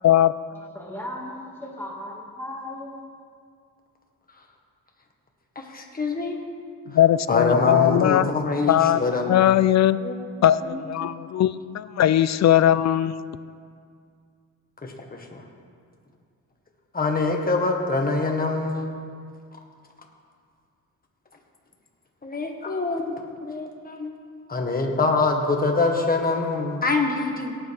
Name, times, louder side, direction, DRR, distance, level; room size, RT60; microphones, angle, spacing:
voice 1, 0.0-0.6 6.9-8.3 8.7-9.0 9.3-10.0 10.4-13.2, left 11 dB, 55° left, 16 dB, 0.4 m, -19 dB
voice 2, 0.7-2.9, left 1 dB, 5° left, -3 dB, 2.1 m, -36 dB
voice 3, 5.5-6.4 6.9-7.0 7.3-9.4 10.0-10.1 10.6-11.1 14.8-15.4 16.9-19.0 22.2-24.1 24.5-27.5, left 3 dB, 25° left, 2 dB, 1.5 m, -25 dB
17.5 x 9.2 x 3.5 m, 2.2 s
cardioid pair, 115°, 34 cm